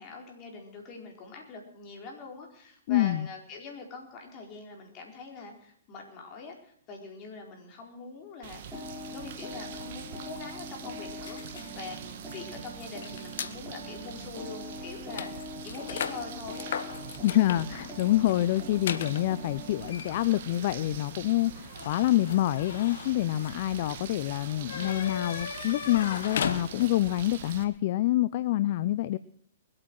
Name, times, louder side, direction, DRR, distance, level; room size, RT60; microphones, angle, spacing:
voice 1, 0.0-16.7 24.6-25.3, left 4 dB, 35° left, 1 dB, 4.5 m, -44 dB
voice 2, 2.9-3.3 17.2-29.2, left 15 dB, 50° left, 16 dB, 0.5 m, -26 dB
sound 1, 8.4-27.6, right 8 dB, 55° right, 1.6 m, -44 dB
sound 2, 8.7-20.0, left 1 dB, 5° left, 4.8 m, -43 dB
sound 3, 11.2-13.6 14.3-14.4 14.7-27.1, left 7 dB, 70° left, 1.2 m, -39 dB
21.0 x 8.7 x 6.3 m, 0.64 s
hypercardioid pair, 130°, 0 cm